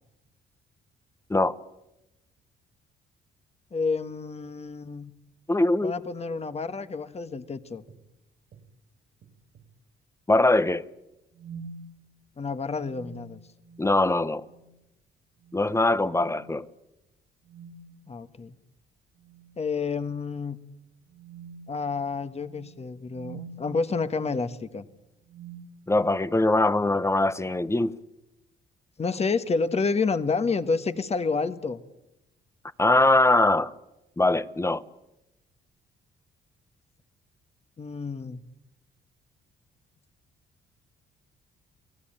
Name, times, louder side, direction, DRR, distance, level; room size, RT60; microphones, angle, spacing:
voice 1, 3.7-5.1 5.8-7.8 12.4-13.4 18.1-18.6 19.6-20.6 21.7-24.9 29.0-31.8 37.8-38.4, left 4 dB, 30° left, 1.5 m, -29 dB
voice 2, 5.5-5.9 10.3-10.8 13.8-14.4 15.5-16.7 25.9-27.9 32.8-33.7 34.2-34.8, left 2 dB, 15° left, 1.0 m, -22 dB
sound 1, 7.9-8.1 8.5-8.7 9.2-9.7 11.3-11.9 12.8-14.1 14.4-14.7 15.4-15.8 16.2-16.5 17.4-18.0 19.2-19.6 20.1-20.2 21.1-23.7 24.6-24.8 25.3-26.3, right 5 dB, 60° right, 2.8 m, -46 dB
29.5 x 18.5 x 9.0 m
cardioid pair, 90°, 20 cm